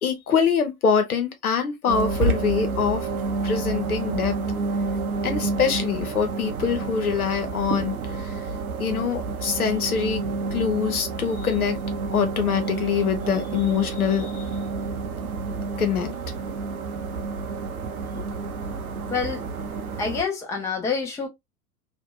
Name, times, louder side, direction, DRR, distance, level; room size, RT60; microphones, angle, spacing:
voice 1, 0.0-3.1 3.4-4.4 5.2-8.5 8.8-10.2 10.5-11.8 12.1-14.5 15.8-16.1, left 6 dB, 80° left, 0.7 m, -24 dB
sound 1, 1.9-20.2, right 4 dB, 80° right, 0.6 m, -29 dB
voice 2, 19.1-19.4 20.0-21.3, left 5 dB, 5° left, 0.4 m, -27 dB
2.6 x 2.1 x 2.2 m
figure-of-eight pair, 85°, 43 cm